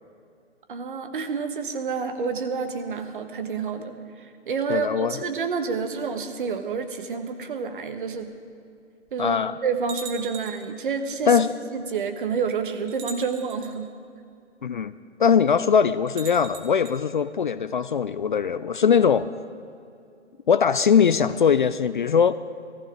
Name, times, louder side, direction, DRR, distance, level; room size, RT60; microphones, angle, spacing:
voice 1, 0.7-8.3 9.1-11.4 11.7-13.9, right 5 dB, 45° right, 8 dB, 1.4 m, -29 dB
voice 2, 4.7-5.2 9.2-9.5 11.3-11.5 14.6-14.9 15.2-19.3 20.5-22.3, left 7 dB, 45° left, 14 dB, 0.5 m, -21 dB
sound 1, 8.2-8.3 9.1-9.2 9.9-10.7 11.9-12.0 12.9-13.7 16.1-17.0, right 6 dB, 15° right, 1.0 m, -40 dB
18.0 x 14.5 x 5.0 m, 2.4 s
figure-of-eight pair, 130°, 35 cm